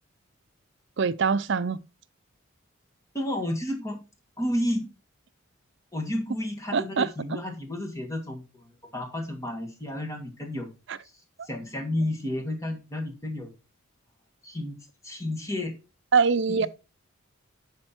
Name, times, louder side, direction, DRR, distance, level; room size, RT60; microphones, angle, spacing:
voice 1, 1.0-1.8 6.7-7.1 10.9-11.0 16.1-16.7, right 5 dB, 55° right, 0.5 m, -23 dB
voice 2, 3.1-4.0 4.4-4.9 5.9-10.7 11.5-13.5 14.4-14.8 15.0-15.7 16.5-16.7, left 1 dB, 15° left, 1.7 m, -31 dB
10.5 x 4.3 x 4.4 m
head